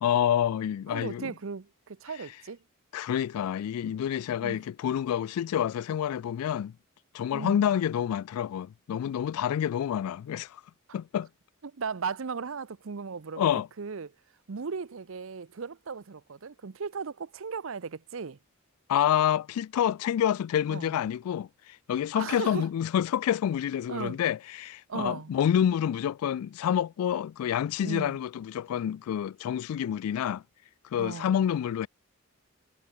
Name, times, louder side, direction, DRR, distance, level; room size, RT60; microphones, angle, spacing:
voice 1, 0.0-1.3 2.9-6.7 7.1-10.6 10.9-11.3 13.4-13.7 18.9-30.4 30.9-31.9, left 9 dB, 85° left, 0.3 m, -28 dB
voice 2, 0.9-2.6 4.4-4.6 7.3-7.7 11.6-13.5 13.8-14.1 14.5-18.4 20.7-20.9 22.1-22.7 23.9-24.2 24.9-25.3 27.8-28.2 31.0-31.3, right 5 dB, 65° right, 0.6 m, -36 dB
head